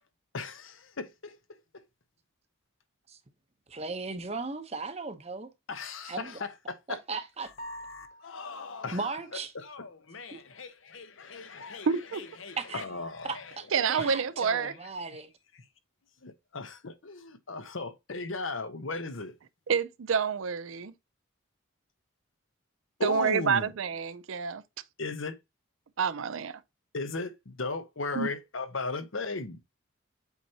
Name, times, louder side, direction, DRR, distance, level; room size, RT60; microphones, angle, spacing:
voice 1, 0.3-1.4 1.7-1.8 5.7-7.0 7.7-9.1 9.5-11.9 12.1-14.2 14.6-14.7 16.2-19.4 23.0-23.7 25.0-25.4 26.9-29.6, left 3 dB, 65° left, 0.9 m, -37 dB
voice 2, 3.7-5.5 6.1-6.4 6.9-7.5 8.9-9.5 10.3-10.4 12.6-12.8 13.2-15.3, right 4 dB, 30° right, 0.8 m, -37 dB
sound 1, 7.6-8.6, equal, 40° left, 0.9 m, -44 dB
voice 3, 11.9-12.2 13.7-14.8 19.7-20.9 23.0-24.6 26.0-26.6 28.1-28.3, right 6 dB, 70° right, 0.5 m, -28 dB
8.2 x 4.4 x 2.8 m
head